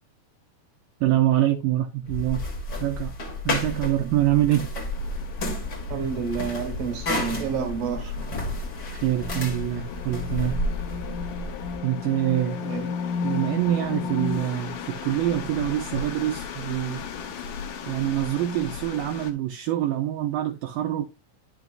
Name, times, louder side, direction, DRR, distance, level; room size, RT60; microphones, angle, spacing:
voice 1, 1.0-2.4 2.8-3.1 3.5-4.7 8.9-10.6 11.8-12.6 13.2-17.0 17.9-21.0, right 13 dB, 80° right, 2.2 m, -25 dB
sound 1, 2.1-11.8, left 2 dB, 50° left, 1.2 m, -31 dB
sound 2, 4.9-19.3, left 6 dB, 70° left, 2.2 m, -35 dB
voice 2, 5.9-8.1 12.6-12.9, right 6 dB, 65° right, 2.6 m, -29 dB
10.5 x 6.0 x 2.4 m
omnidirectional pair, 4.5 m